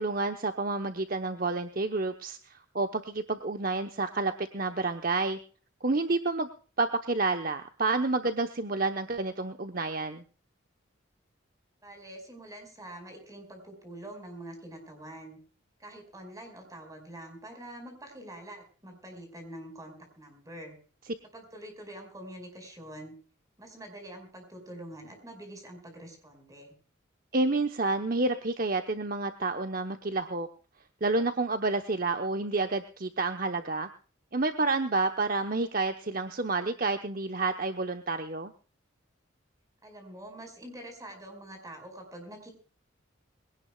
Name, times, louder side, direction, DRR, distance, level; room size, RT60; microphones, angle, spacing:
voice 1, 0.0-5.4 5.8-6.5 6.8-10.2 27.3-30.5 31.0-33.9 34.3-38.5, right 3 dB, 45° right, 7 dB, 0.9 m, -29 dB
voice 2, 11.8-15.4 15.8-20.8 21.3-23.1 23.6-26.7 39.8-42.5, right 1 dB, 15° right, 4 dB, 4.9 m, -45 dB
22.5 x 17.5 x 2.3 m, 0.38 s
head